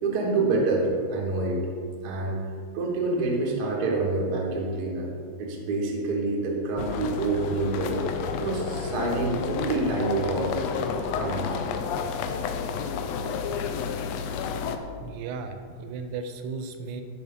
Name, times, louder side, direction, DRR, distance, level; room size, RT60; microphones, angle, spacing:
voice 1, 0.0-1.6 2.0-2.4 2.7-5.1 5.4-7.9 8.4-10.5 11.1-11.6, right 3 dB, 55° right, -1 dB, 1.1 m, -27 dB
sound 1, 6.8-14.8, left 6 dB, 85° left, 1.5 m, -30 dB
voice 2, 15.0-17.0, right 4 dB, 80° right, 7 dB, 2.0 m, -35 dB
11.5 x 5.8 x 3.6 m, 2.2 s
omnidirectional pair, 3.5 m